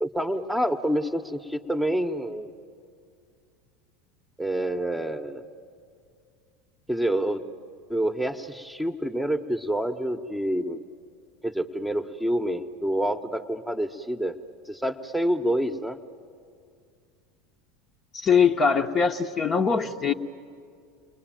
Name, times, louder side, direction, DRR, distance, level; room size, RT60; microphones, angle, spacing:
voice 1, 0.0-2.5 4.4-5.4 6.9-7.5 7.9-10.8 11.4-14.4 14.7-16.0, right 1 dB, ahead, 5 dB, 1.2 m, -27 dB
voice 2, 18.1-20.1, left 6 dB, 35° left, 4 dB, 1.1 m, -22 dB
30.0 x 21.5 x 9.2 m, 2.3 s
hypercardioid pair, 80°, 0 cm